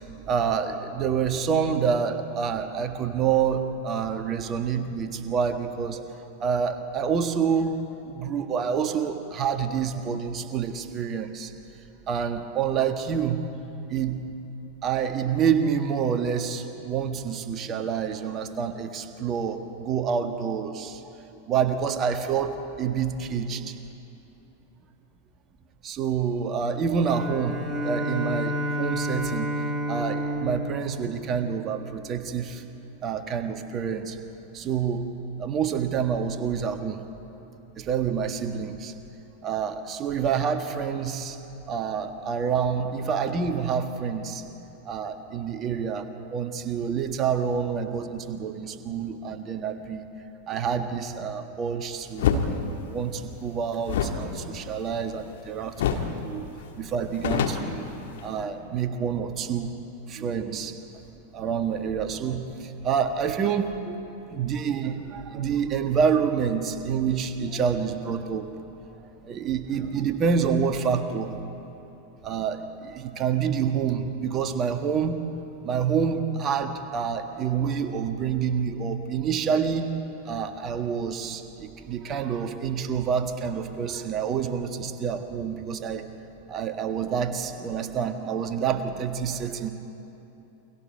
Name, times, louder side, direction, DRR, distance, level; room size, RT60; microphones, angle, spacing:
voice 1, 0.3-6.1 6.4-7.7 8.1-11.5 12.1-13.4 13.9-14.2 14.8-21.0 21.5-23.7 25.8-27.6 27.8-29.5 29.9-32.6 33.0-34.2 34.5-35.1 35.4-37.0 37.8-38.9 39.4-41.4 41.7-44.4 44.8-50.1 50.5-52.4 52.9-56.5 56.7-57.9 58.2-59.7 60.1-60.8 61.3-64.0 64.3-68.5 69.0-71.4 72.2-75.2 75.6-79.9 80.2-86.1 86.5-89.7, right 7 dB, 30° right, 7 dB, 1.6 m, -27 dB
Bowed string instrument, 27.1-32.1, equal, 10° right, 2.6 m, -30 dB
sound 1, 52.2-52.5 53.8-55.4 55.8-56.2 56.5-56.6 56.9-58.4, left 7 dB, 55° left, 1.8 m, -27 dB
29.5 x 23.5 x 4.7 m, 2.9 s
figure-of-eight pair, 90°, 0 cm